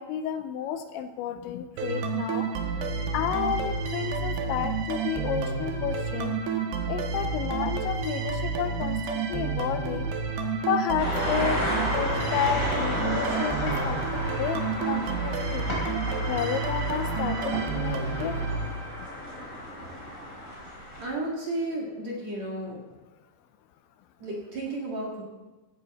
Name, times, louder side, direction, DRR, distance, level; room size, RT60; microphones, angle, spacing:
voice 1, 0.0-2.5 3.1-6.4 6.9-10.1 10.7-11.6 11.9-15.7 16.3-18.4, left 9 dB, 80° left, 8 dB, 2.9 m, -31 dB
sound 1, 1.8-19.3, right 4 dB, 70° right, 3.1 m, -30 dB
sound 2, 11.0-21.0, equal, 20° left, 3.9 m, -32 dB
voice 2, 21.0-22.8 24.2-25.2, right 1 dB, 50° right, -3 dB, 2.4 m, -33 dB
17.0 x 13.0 x 4.2 m, 1.1 s
omnidirectional pair, 5.5 m